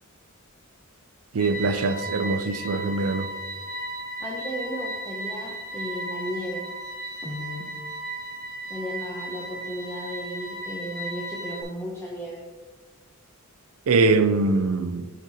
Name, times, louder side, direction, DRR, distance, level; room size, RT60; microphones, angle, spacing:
voice 1, 1.3-3.3 13.9-15.1, right 3 dB, 75° right, 0.4 m, -22 dB
sound 1, 1.4-11.6, right 1 dB, 55° left, 1.8 m, -35 dB
voice 2, 4.2-6.6 7.2-7.6 8.7-12.4, equal, 10° left, 0.7 m, -34 dB
7.4 x 4.0 x 4.1 m
head